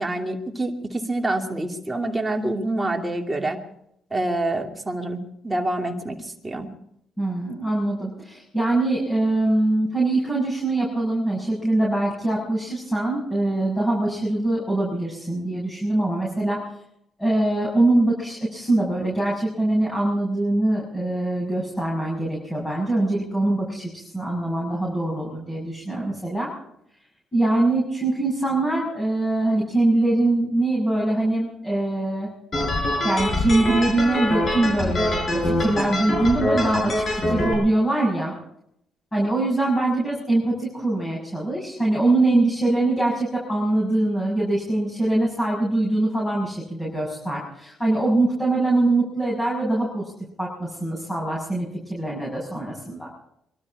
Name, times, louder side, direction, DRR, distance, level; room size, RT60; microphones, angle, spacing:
voice 1, 0.0-3.6 4.1-6.7, right 2 dB, 15° right, 2 dB, 2.6 m, -27 dB
voice 2, 7.2-16.6 17.2-26.5 27.3-32.3 33.0-38.3 39.1-50.1 50.4-53.1, right 2 dB, 15° left, -4 dB, 6.8 m, -23 dB
sound 1, 32.5-37.5, left 1 dB, 40° left, 6.4 m, -24 dB
23.5 x 13.0 x 4.8 m, 0.75 s
cardioid pair, 90°, 0 cm